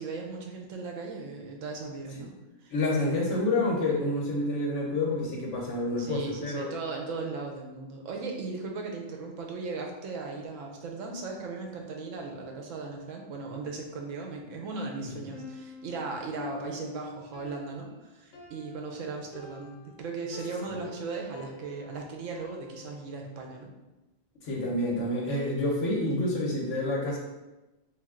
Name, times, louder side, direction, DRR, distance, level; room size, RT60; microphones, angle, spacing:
voice 1, 0.0-2.3 2.6-2.7 6.0-23.7, right 3 dB, 75° right, 1 dB, 1.0 m, -37 dB
voice 2, 2.7-6.7 15.0-15.1 20.7-20.8 24.4-27.2, left 2 dB, 65° left, -2 dB, 1.1 m, -28 dB
Piano, 15.3-23.2, left 3 dB, 90° left, 1.1 m, -46 dB
3.2 x 2.7 x 3.6 m, 1.1 s
omnidirectional pair, 1.4 m